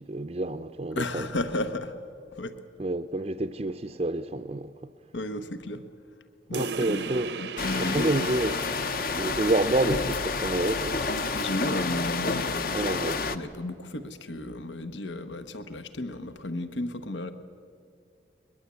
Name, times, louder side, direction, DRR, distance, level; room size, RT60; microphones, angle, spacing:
voice 1, 0.0-1.3 2.8-4.7 6.5-7.3 7.7-8.6 9.2-11.0 12.7-13.3, right 2 dB, 35° right, 0.5 m, -28 dB
voice 2, 0.9-2.0 2.3-2.6 5.1-5.8 6.5-8.3 11.3-12.9 13.1-17.3, left 1 dB, 80° left, 1.2 m, -33 dB
sound 1, 6.5-11.6, right 5 dB, 65° right, 0.8 m, -39 dB
sound 2, 7.6-13.4, left 4 dB, 50° left, 0.9 m, -29 dB
21.5 x 21.5 x 8.4 m
head